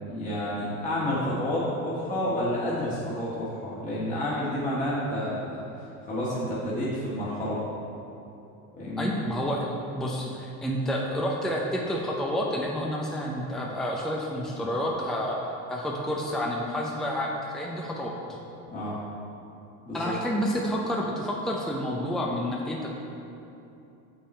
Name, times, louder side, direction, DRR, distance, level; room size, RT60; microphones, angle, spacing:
voice 1, 0.1-7.6 8.7-9.1 18.7-18.9 19.8-20.1, left 1 dB, 20° left, -8 dB, 1.7 m, -30 dB
voice 2, 9.0-18.4 19.9-22.9, equal, ahead, -2 dB, 0.6 m, -29 dB
6.8 x 5.6 x 4.3 m, 2.9 s
supercardioid pair, 110°, 38 cm